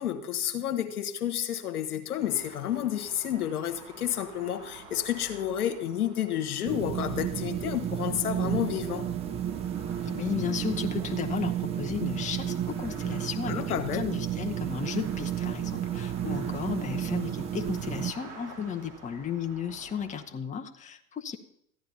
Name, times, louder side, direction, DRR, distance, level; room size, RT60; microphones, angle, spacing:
voice 1, 0.0-9.1 13.5-14.0, left 10 dB, 80° left, 8 dB, 1.4 m, -30 dB
sound 1, 2.2-20.2, right 3 dB, 55° right, 4.6 m, -50 dB
sound 2, 6.7-18.1, right 10 dB, 15° right, 0.3 m, -32 dB
voice 2, 10.1-21.4, left 7 dB, 15° left, 4 dB, 0.9 m, -34 dB
14.5 x 10.5 x 4.1 m, 0.73 s
hypercardioid pair, 95°, 44 cm